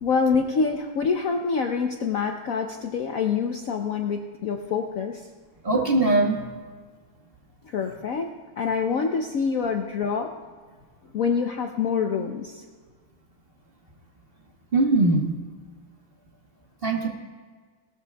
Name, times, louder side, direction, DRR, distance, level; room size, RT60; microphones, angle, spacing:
voice 1, 0.0-5.3 7.6-8.3 8.6-10.3 11.1-12.6, left 5 dB, 85° left, 4 dB, 0.7 m, -26 dB
voice 2, 5.6-6.5 14.7-15.3 16.8-17.1, right 2 dB, 30° right, 0 dB, 1.5 m, -21 dB
18.5 x 14.5 x 2.3 m, 1.6 s
omnidirectional pair, 2.3 m